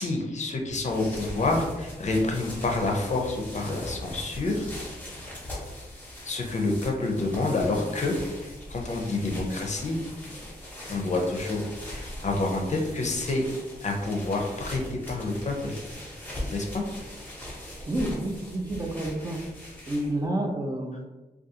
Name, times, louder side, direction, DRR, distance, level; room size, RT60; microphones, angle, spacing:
voice 1, 0.0-4.7 6.3-8.2 8.7-10.0 10.9-13.4 13.8-14.8 15.1-15.8 16.5-16.8, left 2 dB, 45° left, 1 dB, 0.5 m, -28 dB
sound 1, 0.7-20.3, left 1 dB, 10° left, 0.8 m, -40 dB
voice 2, 17.9-19.4 19.9-21.0, right 1 dB, 20° right, 1 dB, 0.3 m, -29 dB
2.4 x 2.3 x 2.7 m, 1.1 s
wide cardioid pair, 100°, 16 cm